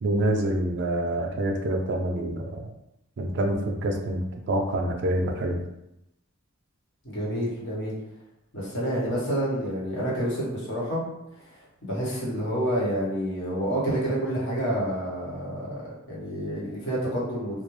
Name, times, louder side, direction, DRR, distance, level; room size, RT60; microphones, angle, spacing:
voice 1, 0.0-2.7 3.2-5.6, right 1 dB, 55° right, 2 dB, 0.4 m, -26 dB
voice 2, 7.0-7.9 8.5-11.0 11.8-17.6, equal, 60° left, -6 dB, 0.9 m, -28 dB
2.3 x 2.0 x 3.0 m, 0.85 s
head